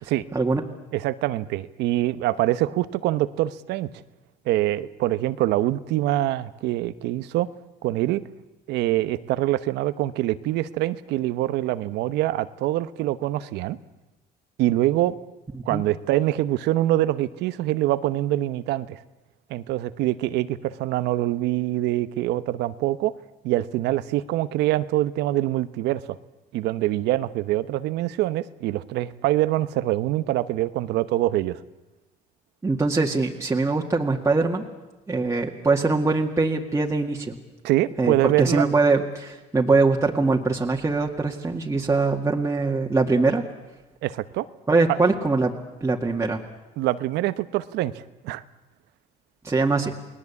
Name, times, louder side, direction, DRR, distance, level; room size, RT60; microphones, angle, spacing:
voice 1, 0.3-0.6 15.5-15.8 32.6-34.6 35.1-37.4 38.0-43.4 44.7-45.5 45.8-46.4 49.4-49.9, right 3 dB, 15° right, 0 dB, 2.0 m, -22 dB
voice 2, 0.9-3.9 4.4-7.5 7.8-8.2 8.7-13.8 14.6-15.1 15.7-19.0 19.5-23.1 23.4-26.2 26.5-31.6 37.6-38.6 44.0-44.5 46.8-48.4, right 15 dB, 85° right, 14 dB, 1.0 m, -24 dB
29.5 x 19.5 x 8.4 m, 1.1 s
cardioid pair, 110°, 17 cm